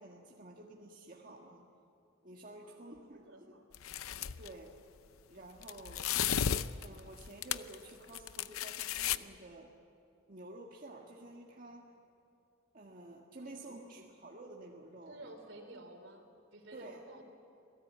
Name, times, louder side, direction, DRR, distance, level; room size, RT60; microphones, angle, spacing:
voice 1, 0.0-1.6 2.2-3.5 4.4-4.8 5.3-6.1 6.8-9.7 10.3-11.9 12.7-15.3 16.7-17.0, right 2 dB, 40° right, -2 dB, 1.8 m, -51 dB
voice 2, 2.6-3.7 13.4-13.8 15.1-16.2 16.5-17.2, right 2 dB, 65° right, 5 dB, 3.6 m, -53 dB
sound 1, 3.7-4.5 5.6-7.8 8.1-9.2, left 9 dB, 90° left, 0.7 m, -34 dB
26.5 x 18.5 x 8.7 m, 2.5 s
head